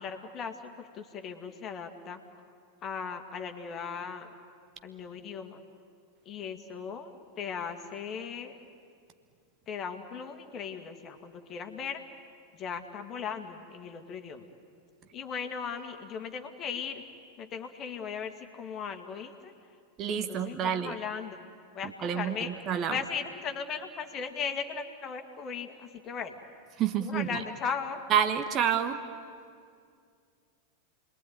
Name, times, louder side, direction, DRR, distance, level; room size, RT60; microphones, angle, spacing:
voice 1, 0.0-2.2 2.8-4.3 4.8-5.6 6.3-7.1 7.4-8.6 9.7-12.0 12.6-14.5 15.1-17.0 17.4-19.5 20.1-21.4 21.7-22.5 22.9-26.4 27.0-28.0, left 6 dB, 30° left, 6 dB, 2.2 m, -37 dB
voice 2, 20.0-21.0 22.0-23.0 26.8-27.4 28.1-29.0, right 8 dB, 30° right, 9 dB, 1.2 m, -28 dB
29.5 x 21.5 x 9.4 m, 2.3 s
figure-of-eight pair, 90°, 0 cm